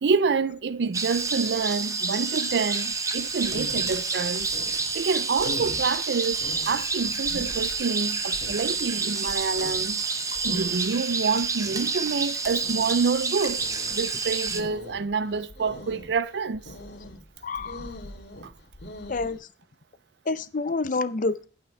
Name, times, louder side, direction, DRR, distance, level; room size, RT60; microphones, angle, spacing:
voice 1, 0.0-4.5 4.9-10.0 10.4-13.6 13.9-16.7 18.4-18.5, right 4 dB, 75° right, 0.5 m, -27 dB
sound 1, 0.9-14.6, right 4 dB, 20° right, 0.8 m, -29 dB
sound 2, 3.2-19.4, left 1 dB, 70° left, 2.2 m, -43 dB
voice 2, 17.4-18.0 19.1-19.4 20.3-21.4, left 3 dB, 50° left, 0.6 m, -28 dB
11.0 x 5.8 x 4.4 m
head